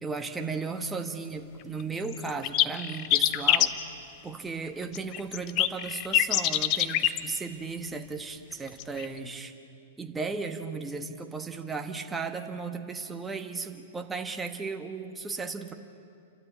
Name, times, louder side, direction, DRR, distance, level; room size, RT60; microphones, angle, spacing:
voice 1, 0.0-3.7 4.2-9.5 10.0-15.7, right 4 dB, 10° right, 5 dB, 1.4 m, -35 dB
sound 1, 1.8-1.9 2.1-3.7 4.9-7.2 8.7-9.1, left 13 dB, 40° left, 0.8 m, -24 dB
29.5 x 12.5 x 9.3 m, 2.4 s
hypercardioid pair, 145°, 0 cm